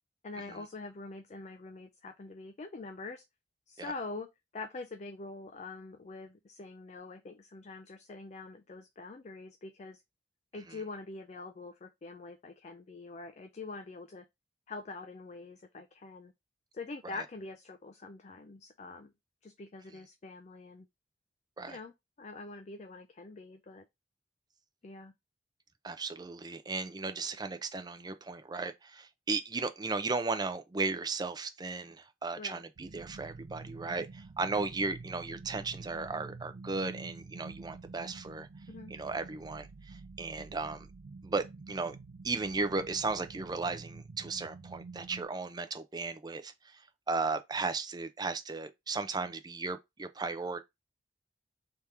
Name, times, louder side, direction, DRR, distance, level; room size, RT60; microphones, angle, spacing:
voice 1, 0.2-3.2 3.7-4.3 4.5-10.0 10.5-14.2 14.7-16.3 16.7-19.1 19.4-20.9 21.7-21.9 22.2-23.9 24.8-25.1 32.4-32.6 34.5-34.7 38.7-38.9, left 3 dB, 40° left, 0.4 m, -44 dB
voice 2, 25.8-38.5 38.9-40.9 41.2-42.0 42.2-46.5 47.1-50.6, right 3 dB, 25° right, 0.4 m, -35 dB
sound 1, 32.8-45.2, right 3 dB, 75° right, 0.5 m, -48 dB
3.5 x 2.9 x 4.7 m
head